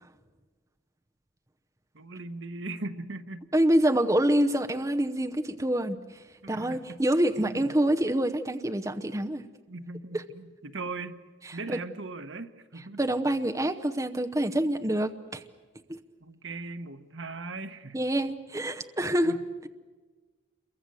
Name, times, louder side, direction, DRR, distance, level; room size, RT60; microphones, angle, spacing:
voice 1, 1.9-3.4 6.4-7.0 7.4-7.7 9.7-11.2 11.5-13.0 16.2-18.0 19.2-19.4, right 3 dB, 80° right, 9 dB, 1.2 m, -39 dB
voice 2, 3.5-9.5 10.1-10.2 11.4-11.8 13.0-15.4 15.9-16.0 17.9-19.7, right 1 dB, 15° right, 6 dB, 0.8 m, -26 dB
28.0 x 23.0 x 7.7 m, 1.4 s
head